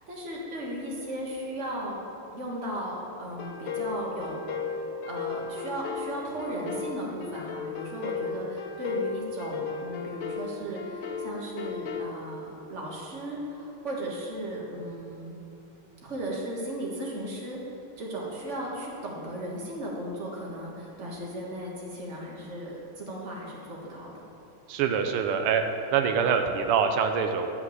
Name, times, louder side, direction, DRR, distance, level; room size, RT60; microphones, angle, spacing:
voice 1, 0.1-2.0 2.3-4.4 4.7-15.4 16.0-17.6 18.0-24.1, right 1 dB, 35° right, -3 dB, 1.8 m, -36 dB
sound 1, 3.4-12.1, left 5 dB, 70° left, 1.5 m, -35 dB
voice 2, 24.7-25.6 25.9-27.5, right 7 dB, 85° right, 6 dB, 1.6 m, -24 dB
12.0 x 4.9 x 7.9 m, 2.8 s
omnidirectional pair, 2.4 m